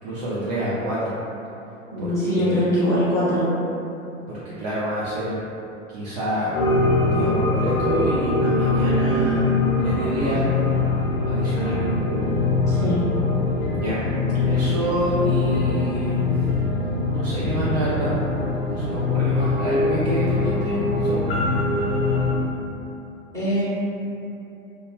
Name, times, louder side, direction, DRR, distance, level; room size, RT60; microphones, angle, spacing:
voice 1, 0.0-1.1 2.0-2.7 4.3-5.4 5.9-6.5 6.9-10.5 11.2-11.8 13.8-14.0 14.5-16.4 17.1-18.1 18.7-21.4, right 1 dB, 35° right, -10 dB, 0.4 m, -27 dB
voice 2, 1.9-3.5 12.7-12.9 23.3-23.6, equal, 5° left, -12 dB, 0.8 m, -22 dB
sound 1, 6.5-22.3, left 3 dB, 50° left, 0.7 m, -22 dB
2.3 x 2.1 x 3.1 m, 2.8 s
figure-of-eight pair, 90°, 40 cm